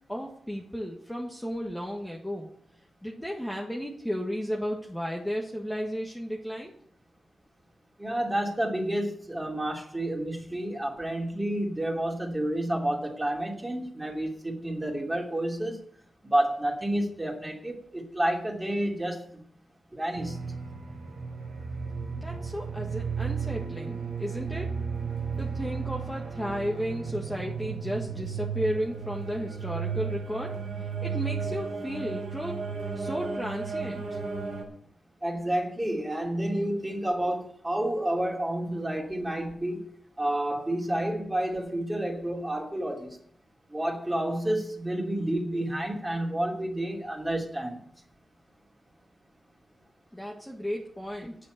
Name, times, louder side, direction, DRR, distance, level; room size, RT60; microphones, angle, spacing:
voice 1, 0.1-2.5 3.0-6.7 22.2-24.7 25.4-30.5 31.0-32.6 32.9-34.2 50.1-51.4, equal, 5° left, -2 dB, 1.5 m, -34 dB
voice 2, 8.0-15.8 16.3-19.2 19.9-20.4 35.2-39.9 40.2-43.2 43.7-47.8, right 1 dB, 15° right, 0 dB, 2.8 m, -30 dB
sound 1, 20.2-34.6, right 5 dB, 85° right, 3.9 m, -34 dB
9.3 x 7.5 x 9.1 m, 0.64 s
wide cardioid pair, 120°, 0 cm